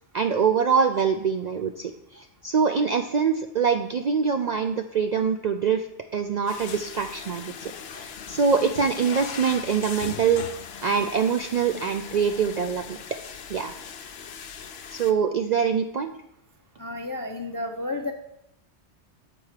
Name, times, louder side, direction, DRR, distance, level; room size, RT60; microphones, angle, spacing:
voice 1, 0.1-5.8 6.1-10.5 10.8-13.0 13.5-13.7 14.9-16.1, right 6 dB, 65° right, 6 dB, 0.4 m, -24 dB
sound 1, 6.5-15.1, left 7 dB, 65° left, 0.9 m, -39 dB
voice 2, 16.8-18.1, left 2 dB, 35° left, 5 dB, 0.3 m, -31 dB
7.4 x 4.6 x 6.5 m, 0.81 s
omnidirectional pair, 1.2 m